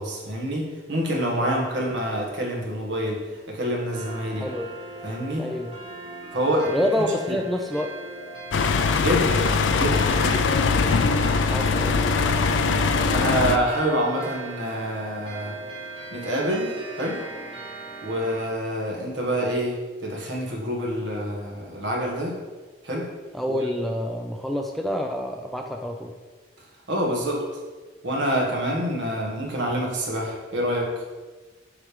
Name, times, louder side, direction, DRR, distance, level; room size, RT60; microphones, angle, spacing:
voice 1, 0.0-4.5 5.0-5.5 6.3-6.7 7.3-7.4 8.9-10.5 12.8-15.6 16.1-17.3 18.0-22.4 22.8-23.1 23.5-23.7 26.9-27.4 28.0-30.9, equal, 75° right, -1 dB, 1.4 m, -27 dB
sound 1, 3.9-18.5, right 3 dB, 30° right, 1.6 m, -39 dB
voice 2, 4.4-4.7 5.4-5.7 6.7-7.9 11.5-12.0 23.3-26.1, equal, ahead, 2 dB, 0.3 m, -27 dB
sound 2, 8.5-13.6, left 4 dB, 80° left, 0.4 m, -21 dB
7.4 x 3.2 x 4.9 m, 1.3 s
head